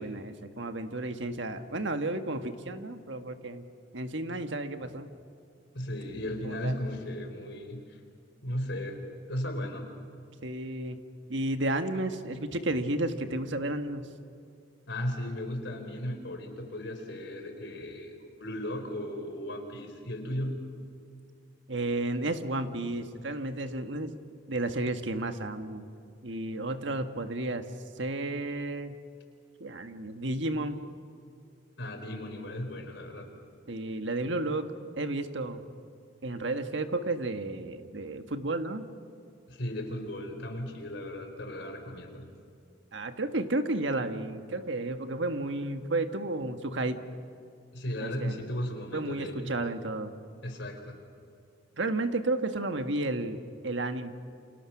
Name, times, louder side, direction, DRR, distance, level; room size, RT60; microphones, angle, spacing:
voice 1, 0.0-3.6 3.9-5.1 6.4-6.8 10.4-11.0 11.3-14.1 21.7-24.2 24.5-25.9 26.2-27.7 28.0-29.0 29.6-30.8 33.7-35.6 36.2-38.9 42.9-47.0 48.0-48.4 48.9-50.2 51.8-54.1, right 2 dB, 70° right, 7 dB, 1.6 m, -32 dB
voice 2, 5.7-8.0 8.4-9.0 9.3-9.9 14.9-20.6 31.8-33.3 39.5-42.3 47.7-49.5 50.4-51.0, left 1 dB, 65° left, 5 dB, 4.3 m, -36 dB
29.5 x 28.0 x 6.0 m, 2.5 s
head